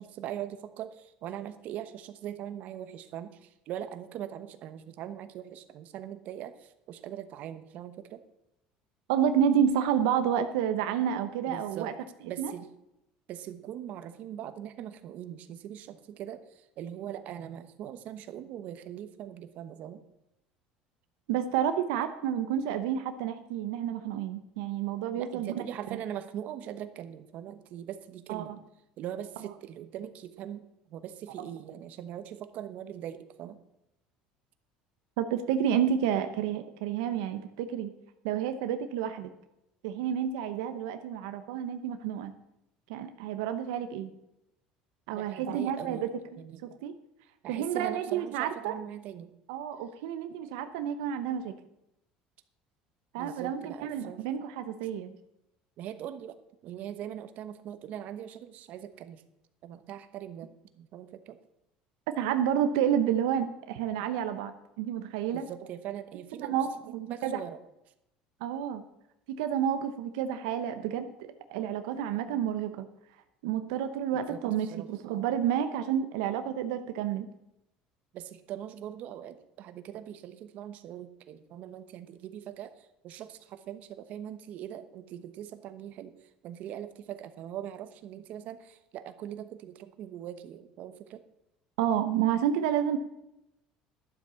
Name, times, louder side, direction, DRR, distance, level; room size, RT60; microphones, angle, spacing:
voice 1, 0.0-8.2 11.5-11.9 12.3-12.7 13.3-20.0 25.2-28.5 29.0-30.7 30.9-33.6 45.1-46.1 46.4-46.6 47.4-49.3 53.2-54.2 55.8-56.4 56.6-59.2 59.6-61.4 65.3-66.6 66.9-67.6 74.3-74.9 78.1-86.1 86.4-91.2, right 10 dB, 60° right, 11 dB, 1.1 m, -41 dB
voice 2, 9.1-11.9 12.4-12.5 21.3-25.6 28.3-28.5 35.2-37.9 38.2-39.3 39.8-42.3 42.9-44.1 45.1-46.1 46.6-46.9 47.5-48.8 49.5-51.5 53.1-55.1 62.1-65.5 66.4-66.7 66.9-67.4 68.4-68.8 69.3-72.9 73.4-77.3 91.8-93.0, right 9 dB, 90° right, 9 dB, 0.9 m, -30 dB
11.5 x 7.8 x 7.0 m, 0.85 s
supercardioid pair, 115°, 3 cm